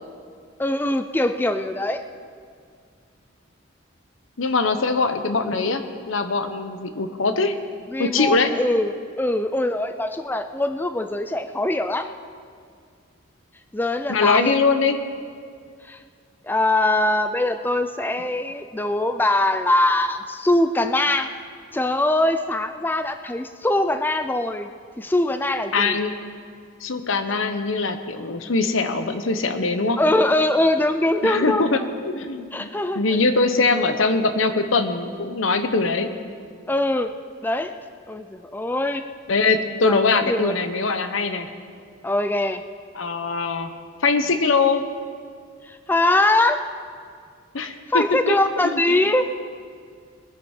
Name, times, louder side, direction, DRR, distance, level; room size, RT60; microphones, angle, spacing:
voice 1, 0.6-2.0 7.9-8.9 9.2-12.1 13.7-14.5 15.9-16.0 16.4-21.3 21.7-24.7 25.0-26.0 30.0-31.8 32.5-33.0 36.7-37.1 37.4-37.7 38.1-39.0 39.8-40.0 40.3-40.5 42.0-42.6 45.7-46.6 47.9-49.3, left 1 dB, 10° left, 9 dB, 0.4 m, -22 dB
voice 2, 4.4-7.6 8.0-8.5 14.1-15.0 25.7-26.1 26.8-30.0 31.2-32.7 32.9-36.1 39.3-41.5 42.9-43.7 44.0-44.8 47.5-49.0, left 3 dB, 85° left, 8 dB, 1.0 m, -22 dB
21.5 x 10.5 x 4.5 m, 2.2 s
head